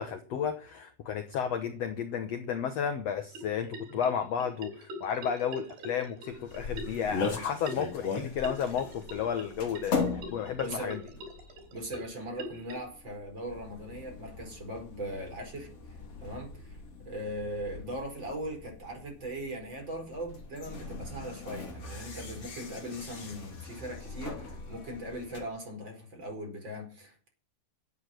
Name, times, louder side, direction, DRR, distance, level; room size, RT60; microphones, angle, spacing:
voice 1, 0.0-11.0, left 7 dB, 70° left, 8 dB, 1.5 m, -32 dB
sound 1, 3.3-12.7, equal, 85° right, 6.1 m, -44 dB
sound 2, 6.3-25.4, left 4 dB, 40° left, 3.7 m, -40 dB
voice 2, 10.6-11.0 11.7-15.7 16.2-16.8 17.1-27.3, right 1 dB, 30° right, 2 dB, 5.3 m, -39 dB
12.5 x 8.5 x 9.2 m, 0.40 s
omnidirectional pair, 4.5 m